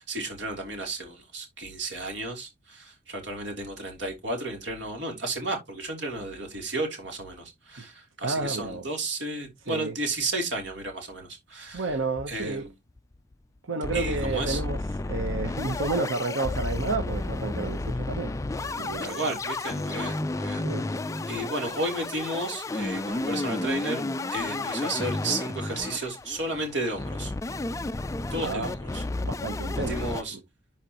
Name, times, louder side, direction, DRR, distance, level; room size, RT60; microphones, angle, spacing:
voice 1, 0.1-11.9 12.3-12.7 13.9-14.6 19.0-20.6 21.3-24.0 24.3-27.3 28.3-29.0 29.7-30.4, right 2 dB, 65° right, 3.2 m, -33 dB
voice 2, 8.2-8.9 9.7-9.9 11.7-12.7 13.6-18.3 18.6-19.4 20.6-20.9 28.4-28.7 29.2-30.4, right 3 dB, 90° right, 1.0 m, -31 dB
sound 1, 11.8-12.6 13.0-13.1 13.3-13.4 13.8-30.2, left 2 dB, 15° left, 0.3 m, -32 dB
11.5 x 4.5 x 3.0 m
head